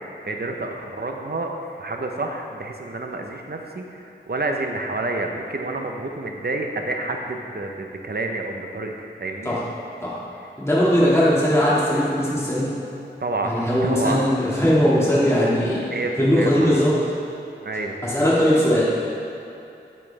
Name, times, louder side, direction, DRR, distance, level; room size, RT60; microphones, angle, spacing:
voice 1, 0.2-1.5 1.8-8.9 9.2-9.6 13.2-14.4 15.9-16.7 17.6-18.0, right 2 dB, 60° right, 2 dB, 0.9 m, -29 dB
voice 2, 10.6-12.7 13.4-15.8 16.2-16.9 18.0-18.9, equal, 15° left, -8 dB, 2.1 m, -19 dB
8.9 x 8.5 x 3.4 m, 2.8 s
wide cardioid pair, 55°, 19 cm